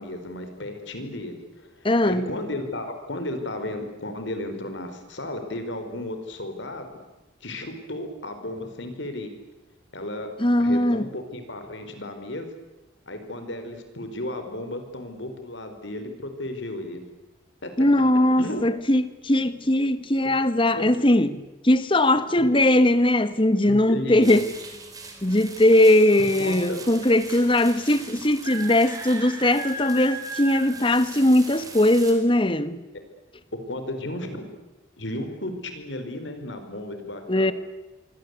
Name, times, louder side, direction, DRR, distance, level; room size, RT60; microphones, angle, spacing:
voice 1, 0.0-6.9 7.4-9.3 9.9-10.3 10.6-12.5 13.1-17.0 17.6-17.7 18.4-18.6 20.8-20.9 22.4-22.5 23.7-24.4 26.2-26.8 33.5-34.5 35.0-37.5, left 1 dB, 65° left, 4.7 m, -34 dB
voice 2, 1.8-2.3 10.4-11.1 17.8-21.4 21.6-24.5 25.2-32.9 37.3-37.5, left 1 dB, 25° left, 1.4 m, -20 dB
sound 1, 24.2-32.1, right 2 dB, 20° right, 4.3 m, -38 dB
27.5 x 24.0 x 8.3 m
head